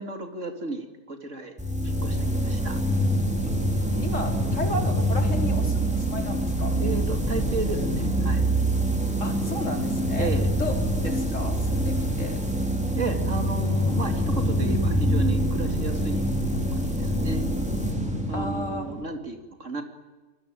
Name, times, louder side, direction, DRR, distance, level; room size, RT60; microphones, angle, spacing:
voice 1, 0.0-1.5 1.8-2.8 6.8-8.5 10.2-10.5 12.9-16.3 16.7-17.4 18.3-19.8, right 3 dB, 50° right, 5 dB, 2.8 m, -33 dB
sound 1, 1.6-19.1, right 1 dB, 5° right, 3.6 m, -25 dB
voice 2, 4.0-6.8 9.2-10.3 10.6-12.4 18.3-18.9, left 1 dB, 50° left, 3 dB, 4.5 m, -34 dB
26.0 x 21.0 x 9.2 m, 1.2 s
omnidirectional pair, 1.6 m